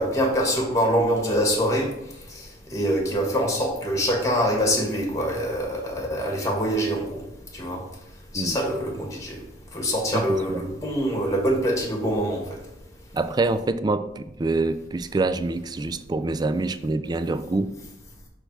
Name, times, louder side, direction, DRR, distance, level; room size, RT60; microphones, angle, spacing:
voice 1, 0.0-1.9 2.3-2.4 2.7-7.2 7.5-7.8 8.3-9.4 9.7-12.4, equal, 20° left, 1 dB, 1.5 m, -24 dB
voice 2, 10.1-10.6 13.1-17.7, right 3 dB, 25° right, 12 dB, 0.3 m, -26 dB
6.3 x 3.4 x 5.9 m, 0.88 s
head